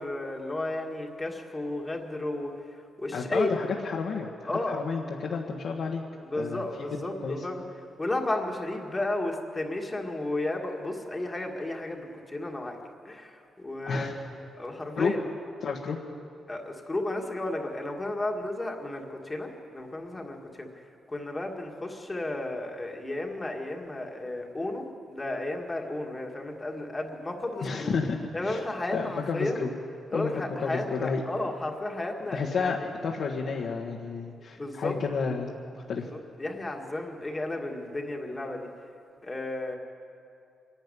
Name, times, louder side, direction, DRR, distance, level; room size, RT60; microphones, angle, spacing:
voice 1, 0.0-3.5 4.5-4.8 6.2-7.6 8.0-12.8 13.1-15.2 16.5-20.7 21.1-28.0 28.3-29.6 30.1-32.9 34.6-35.0 36.0-36.1 36.4-38.7 39.2-39.8, left 2 dB, 15° left, 1 dB, 1.7 m, -33 dB
voice 2, 3.1-6.0 6.4-6.6 7.2-7.4 13.9-14.1 15.0-15.1 15.6-16.0 27.6-28.6 28.9-29.7 30.1-30.3 30.6-31.2 32.3-32.8 33.0-36.1, left 5 dB, 60° left, -3 dB, 1.6 m, -31 dB
25.0 x 11.5 x 9.9 m, 2.5 s
wide cardioid pair, 155°, 0 cm